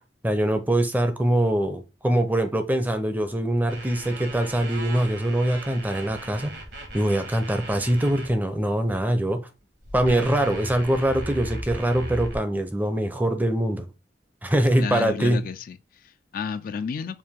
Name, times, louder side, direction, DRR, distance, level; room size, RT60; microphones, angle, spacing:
voice 1, 0.2-6.5 6.9-9.5 9.9-13.9 14.4-15.5, right 1 dB, 10° right, 0.5 m, -23 dB
sound 1, 3.7-8.3 8.8-9.1 9.8-12.4, right 1 dB, 70° right, 1.4 m, -37 dB
voice 2, 14.8-17.2, left 6 dB, 55° left, 0.3 m, -32 dB
4.7 x 2.5 x 3.5 m
head